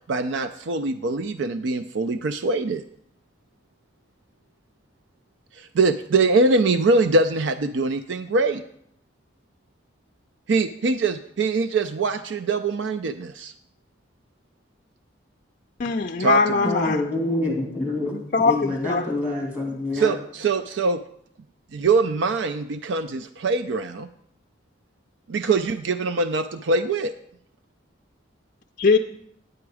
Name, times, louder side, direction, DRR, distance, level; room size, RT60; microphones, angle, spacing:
voice 1, 0.0-2.8 5.5-8.6 10.5-13.5 16.2-16.9 19.9-21.0 21.7-24.1 25.3-27.1, right 3 dB, 75° right, 0.4 m, -23 dB
voice 2, 15.8-17.0 18.1-19.1 28.8-29.0, left 4 dB, 40° left, 0.4 m, -21 dB
voice 3, 16.6-18.1 18.4-20.1, left 2 dB, 10° right, 2.3 m, -26 dB
9.9 x 7.8 x 4.8 m
head